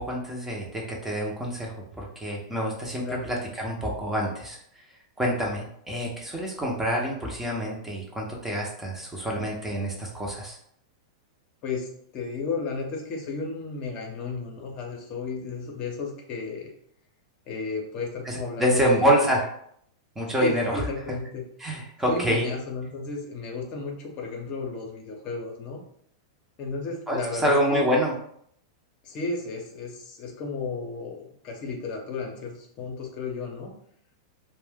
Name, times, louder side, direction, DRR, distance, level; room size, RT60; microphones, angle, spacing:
voice 1, 0.0-4.6 5.2-10.6 18.2-19.5 20.2-20.8 21.6-22.5 27.1-28.1, equal, 10° right, -2 dB, 0.7 m, -27 dB
voice 2, 12.1-16.7 17.5-19.1 20.4-21.4 22.1-25.8 26.6-27.8 29.0-33.7, left 4 dB, 40° left, 1 dB, 0.7 m, -33 dB
2.5 x 2.1 x 3.5 m, 0.68 s
hypercardioid pair, 110°, 2 cm